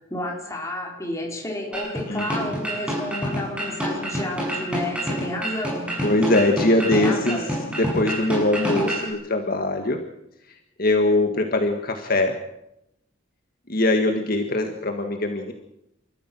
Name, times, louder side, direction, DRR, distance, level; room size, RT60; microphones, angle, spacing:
voice 1, 0.0-6.0 6.8-7.5, left 1 dB, 15° left, 0 dB, 4.4 m, -31 dB
sound 1, 1.7-9.1, equal, 5° right, 7.2 m, -28 dB
voice 2, 2.1-2.5 6.0-10.0 10.5-12.4 13.7-15.5, left 2 dB, 50° left, 4 dB, 1.8 m, -22 dB
29.5 x 14.0 x 6.2 m, 0.81 s
head